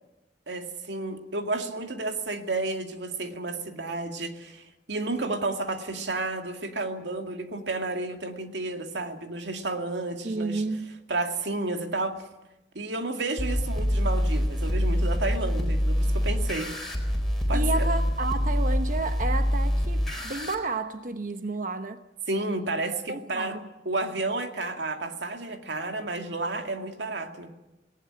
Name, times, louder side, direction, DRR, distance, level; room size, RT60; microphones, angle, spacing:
voice 1, 0.5-10.6 11.1-12.2 12.7-16.7 17.5-17.9 22.3-23.6 23.9-27.5, right 2 dB, 90° right, 2.2 m, -31 dB
voice 2, 10.2-11.0 17.5-22.0 23.1-23.6, right 3 dB, 50° right, 1.0 m, -31 dB
sound 1, 13.4-20.6, equal, ahead, 4.2 m, -25 dB
19.0 x 18.0 x 10.0 m
head